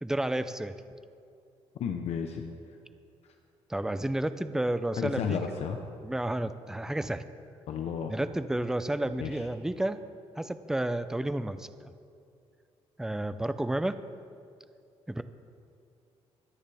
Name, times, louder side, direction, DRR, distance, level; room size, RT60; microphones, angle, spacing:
voice 1, 0.0-0.7 3.7-5.4 6.0-7.2 8.1-10.0 10.4-11.9 13.0-14.0 15.1-15.2, right 1 dB, 5° right, 12 dB, 0.5 m, -31 dB
voice 2, 1.8-2.5 4.9-5.8 7.7-8.1 9.2-9.4, left 7 dB, 65° left, 4 dB, 0.9 m, -32 dB
24.0 x 9.8 x 3.5 m, 2.4 s
cardioid pair, 130°, 11 cm